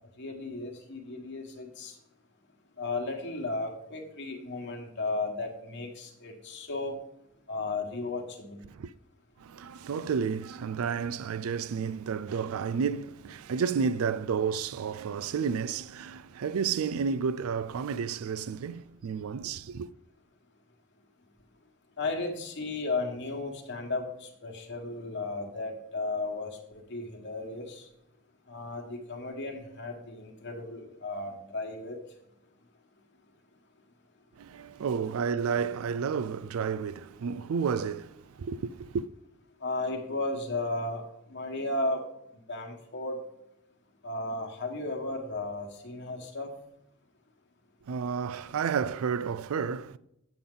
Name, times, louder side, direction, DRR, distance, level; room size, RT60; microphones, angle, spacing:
voice 1, 0.2-1.9 2.8-7.0 7.5-8.6 22.0-27.9 28.5-32.0 39.6-42.1 42.5-43.2 44.0-46.5, left 2 dB, 55° left, 1.4 m, -34 dB
voice 2, 9.4-19.9 34.4-39.0 47.9-50.0, right 6 dB, 75° right, 0.4 m, -31 dB
8.4 x 6.9 x 3.8 m
head